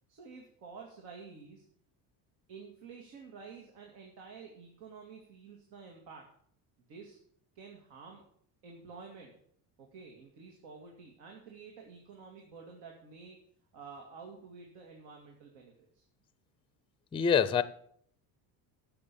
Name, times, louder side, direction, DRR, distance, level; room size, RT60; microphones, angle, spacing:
voice 1, 0.1-1.6 2.5-6.3 6.8-7.2 7.5-8.2 8.6-9.3 9.8-13.4 13.7-16.0, right 5 dB, 90° right, 1 dB, 2.2 m, -50 dB
voice 2, 17.1-17.6, left 7 dB, 15° left, 15 dB, 0.4 m, -25 dB
11.0 x 6.9 x 6.8 m, 0.64 s
cardioid pair, 130°, 43 cm